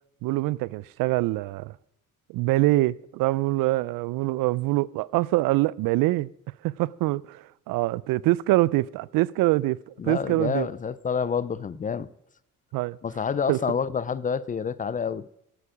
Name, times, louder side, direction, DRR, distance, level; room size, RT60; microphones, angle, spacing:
voice 1, 0.2-1.7 2.3-6.3 6.6-9.8 10.0-10.7 12.7-13.0 13.5-13.6, right 18 dB, 90° right, 0.5 m, -24 dB
voice 2, 10.0-12.1 13.0-15.3, left 6 dB, 25° left, 0.4 m, -28 dB
14.5 x 8.6 x 5.0 m
cardioid pair, 125°, 33 cm